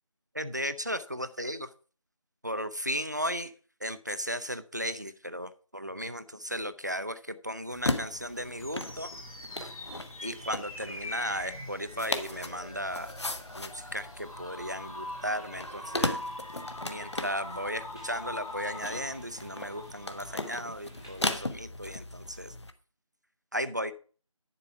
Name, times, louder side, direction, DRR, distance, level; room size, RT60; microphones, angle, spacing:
voice 1, 0.3-1.7 2.4-3.5 3.8-9.1 10.2-13.1 13.6-16.2 16.8-22.5 23.5-23.9, equal, 30° right, 13 dB, 0.5 m, -35 dB
sound 1, 7.7-22.7, left 2 dB, 50° left, 1.1 m, -37 dB
sound 2, 8.1-20.5, left 1 dB, 80° left, 2.5 m, -43 dB
sound 3, 12.4-21.3, left 1 dB, 10° left, 0.8 m, -55 dB
10.5 x 4.7 x 7.0 m, 0.40 s
figure-of-eight pair, 170°, 18 cm